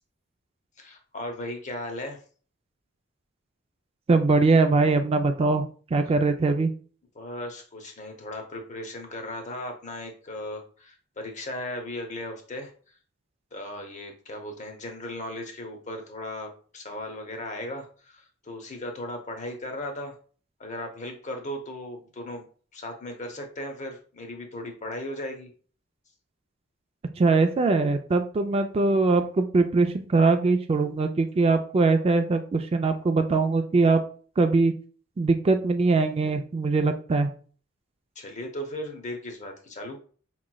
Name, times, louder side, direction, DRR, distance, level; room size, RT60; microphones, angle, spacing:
voice 1, 0.8-2.2 7.1-12.7 13.5-20.2 20.6-22.4 22.7-25.5 38.2-40.0, left 1 dB, 40° left, 4 dB, 0.8 m, -37 dB
voice 2, 4.1-6.7 27.2-34.0 34.4-34.7 35.2-37.3, right 3 dB, 30° right, 7 dB, 0.3 m, -22 dB
4.8 x 3.0 x 2.2 m, 0.41 s
head